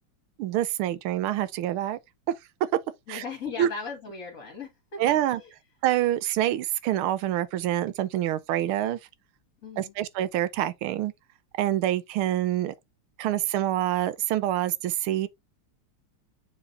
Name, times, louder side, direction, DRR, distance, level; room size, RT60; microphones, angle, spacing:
voice 1, 0.4-2.0 3.1-3.2 3.6-3.7 5.0-5.4 5.8-9.0 9.8-11.1 11.6-12.7 13.2-15.3, right 13 dB, 80° right, 1.5 m, -26 dB
voice 2, 3.1-5.0 5.3-5.5 9.6-9.9, left 5 dB, 40° left, 1.9 m, -37 dB
8.4 x 4.8 x 2.5 m
omnidirectional pair, 2.4 m